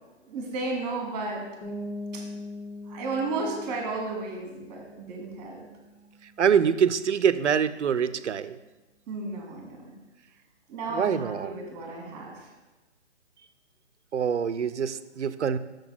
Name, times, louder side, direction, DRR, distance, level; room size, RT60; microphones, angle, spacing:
voice 1, 0.2-1.5 2.1-2.4 2.9-5.6 9.1-9.9 10.7-12.5, right 3 dB, 20° right, 0 dB, 1.8 m, -33 dB
sound 1, 1.6-7.2, left 1 dB, 55° left, 2.6 m, -42 dB
voice 2, 6.4-8.6 10.9-11.5 14.1-15.6, right 7 dB, 75° right, 14 dB, 0.6 m, -25 dB
6.6 x 4.0 x 6.1 m, 1.1 s
hypercardioid pair, 150°, 35 cm